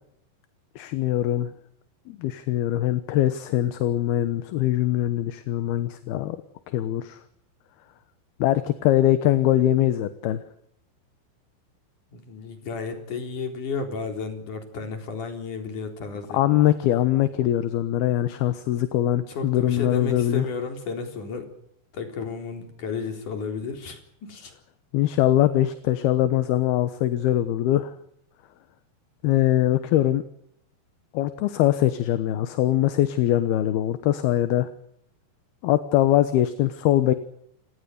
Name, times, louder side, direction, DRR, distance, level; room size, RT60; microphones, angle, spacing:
voice 1, 0.8-1.5 2.1-6.4 6.7-7.2 8.4-10.4 16.3-20.5 24.9-27.9 29.2-30.2 31.1-34.7 35.6-37.1, left 13 dB, 70° left, 11 dB, 2.9 m, -22 dB
voice 2, 12.1-16.4 19.3-21.5 21.9-24.5, left 4 dB, 50° left, 5 dB, 5.2 m, -33 dB
29.5 x 18.0 x 6.7 m, 0.74 s
omnidirectional pair, 4.9 m